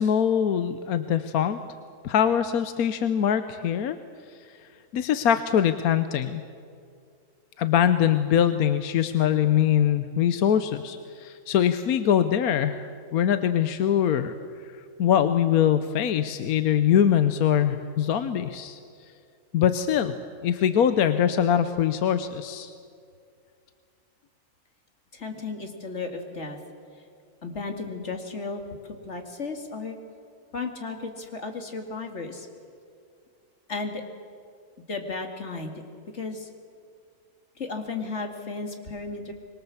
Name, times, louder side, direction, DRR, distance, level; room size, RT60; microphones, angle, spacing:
voice 1, 0.0-1.6 2.0-4.0 4.9-6.4 7.6-12.8 13.1-14.3 15.0-18.8 19.5-20.1 20.4-22.7, left 9 dB, 75° left, 10 dB, 1.3 m, -23 dB
voice 2, 25.1-26.6 27.4-28.6 29.0-30.0 30.5-32.5 33.7-34.0 34.9-35.8 36.1-36.5 37.6-39.3, left 4 dB, 50° left, 4 dB, 2.4 m, -34 dB
25.5 x 22.5 x 7.1 m, 2.3 s
omnidirectional pair, 1.6 m